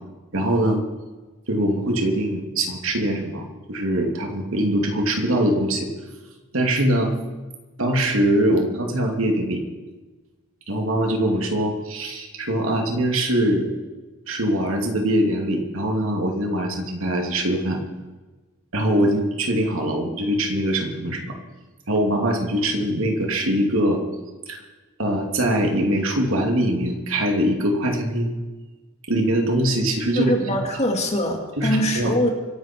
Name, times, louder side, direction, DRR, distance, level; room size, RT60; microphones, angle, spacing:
voice 1, 0.3-0.8 1.5-5.9 6.5-7.1 7.8-9.6 10.7-13.7 14.3-17.8 18.7-21.3 21.9-24.0 24.5-24.6 25.0-28.3 29.1-30.3 31.6-32.1, right 1 dB, 70° right, 2 dB, 2.8 m, -22 dB
voice 2, 30.1-32.3, equal, 30° left, 2 dB, 2.5 m, -23 dB
25.0 x 11.0 x 4.7 m, 1.2 s
head